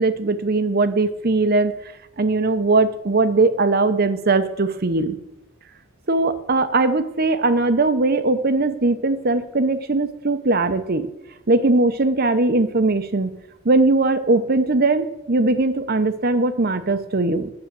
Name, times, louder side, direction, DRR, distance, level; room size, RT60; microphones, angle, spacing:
voice 1, 0.0-1.7 2.2-5.2 6.1-11.1 11.5-13.3 13.6-17.5, right 3 dB, 50° right, 11 dB, 0.8 m, -20 dB
9.7 x 7.4 x 7.4 m, 0.91 s
head